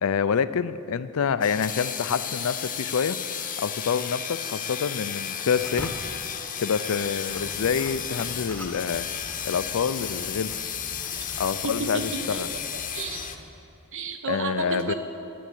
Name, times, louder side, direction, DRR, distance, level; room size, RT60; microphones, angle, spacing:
voice 1, 0.0-3.2 3.6-5.9 6.6-9.1 9.4-10.5 11.4-12.5 14.3-14.9, left 6 dB, 65° left, 14 dB, 0.4 m, -27 dB
sound 1, 1.4-13.4, left 8 dB, 40° left, 0.8 m, -33 dB
sound 2, 5.6-13.5, left 1 dB, 5° left, 0.9 m, -43 dB
sound 3, 7.3-13.5, equal, 25° right, 1.8 m, -47 dB
voice 2, 11.1-12.6 12.9-13.3 13.9-14.9, right 4 dB, 60° right, 7 dB, 1.0 m, -33 dB
10.0 x 10.0 x 7.9 m, 2.6 s
head